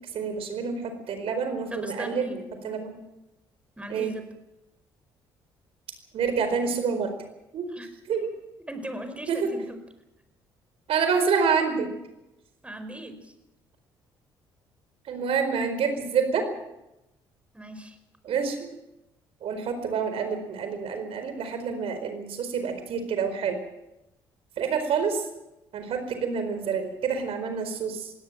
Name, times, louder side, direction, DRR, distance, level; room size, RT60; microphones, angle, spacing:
voice 1, 0.1-2.4 2.6-3.0 3.9-4.1 6.1-7.1 7.5-7.6 8.1-8.3 9.3-9.5 10.9-11.9 15.1-16.4 18.2-18.6 19.4-23.6 24.6-25.2 25.7-28.1, right 6 dB, 60° right, 8 dB, 4.6 m, -27 dB
voice 2, 1.7-2.5 3.8-4.3 7.7-7.9 8.7-9.8 12.6-13.3 17.5-18.0, right 1 dB, 10° right, 9 dB, 4.9 m, -38 dB
22.0 x 17.5 x 7.5 m, 0.92 s
hypercardioid pair, 55°, 11 cm